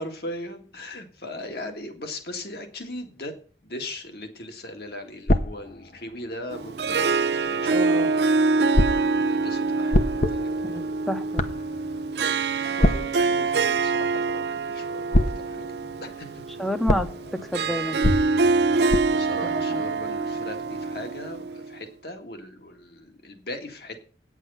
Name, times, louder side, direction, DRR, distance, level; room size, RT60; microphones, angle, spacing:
voice 1, 0.0-3.3 3.6-8.1 8.4-10.5 12.5-15.7 16.0-16.4 19.1-24.0, left 1 dB, 60° left, 5 dB, 2.0 m, -39 dB
sound 1, 5.3-7.2 8.7-14.8 15.1-20.6, left 1 dB, 45° left, 0.9 m, -28 dB
Harp, 6.5-21.8, right 4 dB, 70° right, 0.6 m, -25 dB
voice 2, 7.7-8.1 10.6-11.4 16.6-17.1 17.3-18.0 19.5-19.8, equal, ahead, 9 dB, 0.8 m, -29 dB
9.3 x 8.2 x 5.6 m, 0.39 s
head